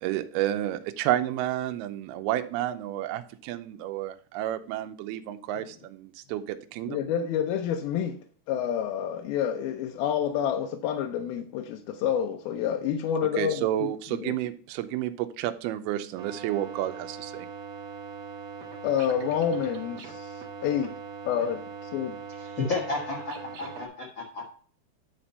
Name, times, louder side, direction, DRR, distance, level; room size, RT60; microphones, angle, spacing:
voice 1, 0.0-7.0 13.4-17.5, right 13 dB, 80° right, 2.5 m, -30 dB
voice 2, 6.9-8.2 8.5-14.3 18.8-20.9 21.3-22.2, left 9 dB, 75° left, 2.4 m, -28 dB
sound 1, 16.2-23.9, right 5 dB, 60° right, 1.8 m, -41 dB
voice 3, 22.4-24.5, left 3 dB, 60° left, 1.2 m, -32 dB
10.0 x 4.4 x 5.4 m
omnidirectional pair, 4.8 m